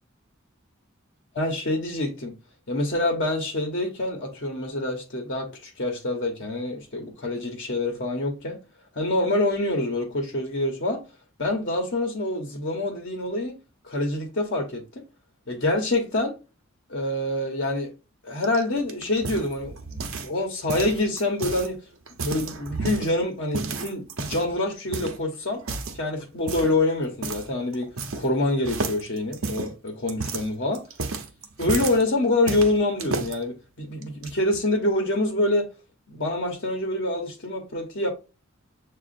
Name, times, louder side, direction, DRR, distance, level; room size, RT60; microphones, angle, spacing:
voice 1, 1.3-2.4 2.7-8.6 8.9-11.0 11.4-13.5 13.8-15.0 15.5-16.4 16.9-17.9 18.2-21.8 22.2-25.6 25.9-30.9 31.6-35.7 36.1-38.1, left 2 dB, 55° left, 1.0 m, -26 dB
sound 1, 18.4-20.4 20.7-21.7 22.1-23.1 23.5-24.5 24.9-25.2 25.6-26.0 26.5-26.8 27.2-27.5 27.7-28.4 28.6-32.0 32.5-33.3 34.0-34.6, right 3 dB, 85° right, 0.8 m, -32 dB
7.2 x 2.4 x 2.5 m
head